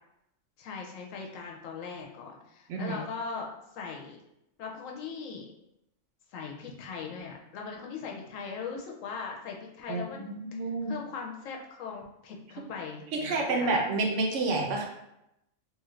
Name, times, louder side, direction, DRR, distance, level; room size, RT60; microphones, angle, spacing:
voice 1, 0.6-4.2 4.6-5.5 6.3-13.8, left 5 dB, 80° left, 0 dB, 1.0 m, -40 dB
voice 2, 9.9-10.9 13.1-14.8, right 3 dB, 70° right, 1 dB, 0.9 m, -29 dB
2.9 x 2.4 x 3.1 m, 0.85 s
omnidirectional pair, 1.4 m